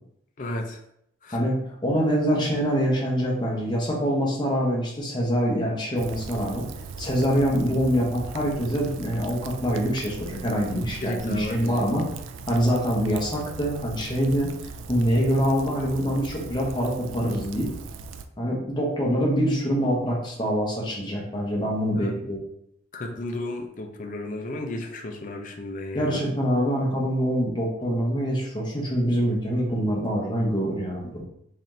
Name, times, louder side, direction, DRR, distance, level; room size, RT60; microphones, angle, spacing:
voice 1, 0.4-0.8 1.2-1.4 10.8-11.9 21.9-22.3 22.9-26.3, left 1 dB, 40° left, 2 dB, 0.5 m, -33 dB
voice 2, 1.8-6.6 7.0-12.0 12.5-14.5 14.9-17.7 18.4-22.4 25.9-31.2, equal, 25° left, -3 dB, 0.9 m, -25 dB
Rain, 6.0-18.3, right 4 dB, 85° right, 0.3 m, -39 dB
4.1 x 3.1 x 2.7 m, 0.74 s
head